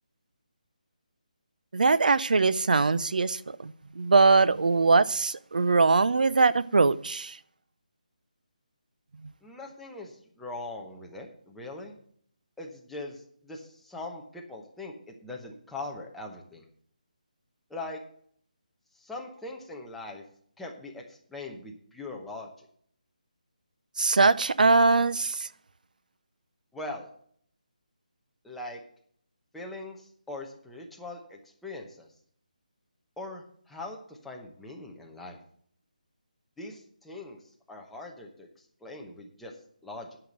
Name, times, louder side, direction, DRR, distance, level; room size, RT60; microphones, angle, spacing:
voice 1, 1.7-7.4 24.0-25.5, right 3 dB, 70° right, 0.6 m, -22 dB
voice 2, 9.4-11.9 12.6-16.7 17.7-18.0 18.9-20.2 20.6-22.7 26.7-27.1 28.4-28.8 29.5-32.1 33.2-35.4 36.6-37.4 37.7-38.5 38.8-39.5 39.8-40.2, left 2 dB, ahead, 0.9 m, -41 dB
10.5 x 5.8 x 7.8 m
hypercardioid pair, 170°, 5 cm